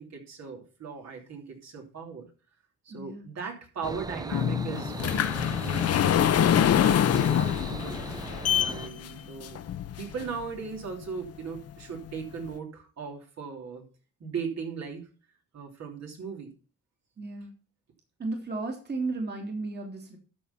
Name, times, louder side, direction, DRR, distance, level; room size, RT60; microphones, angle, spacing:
voice 1, 0.0-2.3 2.8-9.6 10.0-13.8 14.2-15.1 15.5-16.5, right 5 dB, 60° right, 1 dB, 3.1 m, -38 dB
voice 2, 2.9-3.3 17.2-17.5 18.2-20.2, right 3 dB, 35° right, 2 dB, 2.7 m, -34 dB
sound 1, 3.8-8.9, right 3 dB, 15° right, 0.4 m, -38 dB
sound 2, 4.3-10.4 11.0-11.1 11.7-11.8 12.1-12.2, left 10 dB, 55° left, 0.8 m, -25 dB
12.5 x 4.5 x 5.6 m, 0.35 s
cardioid pair, 90°, 30 cm